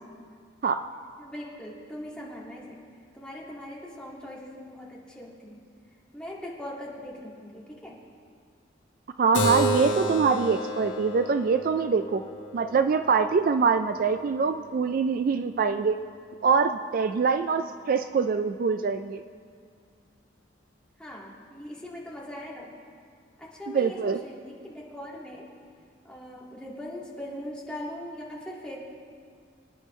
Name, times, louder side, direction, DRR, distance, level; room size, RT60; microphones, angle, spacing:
voice 1, 1.2-2.8 3.1-5.6 6.1-8.0 21.0-22.7 23.4-25.5 26.0-28.8, left 1 dB, 5° left, -5 dB, 1.9 m, -40 dB
voice 2, 9.2-12.2 12.5-16.0 16.4-19.2 23.7-24.2, right 5 dB, 50° right, 9 dB, 0.3 m, -24 dB
Keyboard (musical), 9.3-14.5, equal, 85° left, 1.1 m, -31 dB
25.0 x 9.9 x 3.1 m, 2.1 s
head